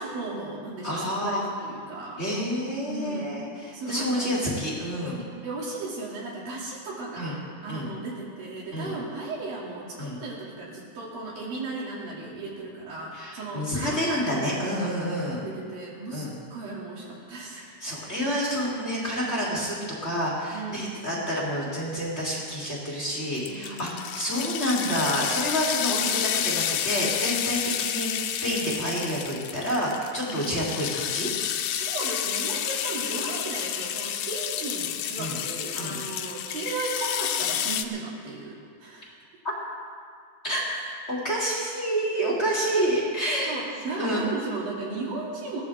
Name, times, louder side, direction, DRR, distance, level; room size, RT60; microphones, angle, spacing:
voice 1, 0.0-2.2 2.9-3.3 3.7-4.4 5.2-14.4 14.8-14.9 15.4-16.3 16.5-17.8 20.5-21.0 23.4-24.0 30.3-30.5 31.7-39.1 43.5-45.6, right 3 dB, 75° right, -4 dB, 4.5 m, -35 dB
voice 2, 0.8-1.4 2.2-5.2 7.2-7.3 7.7-7.9 8.7-8.9 10.0-10.2 13.1-15.4 16.1-16.3 17.8-19.8 20.0-31.3 35.2-35.3 35.7-36.0 40.4-40.8 41.1-43.5 44.0-44.3, equal, 20° left, -6 dB, 3.2 m, -28 dB
sound 1, 23.4-37.8, left 10 dB, 75° left, 2.1 m, -30 dB
21.0 x 17.0 x 3.6 m, 2.1 s
omnidirectional pair, 4.2 m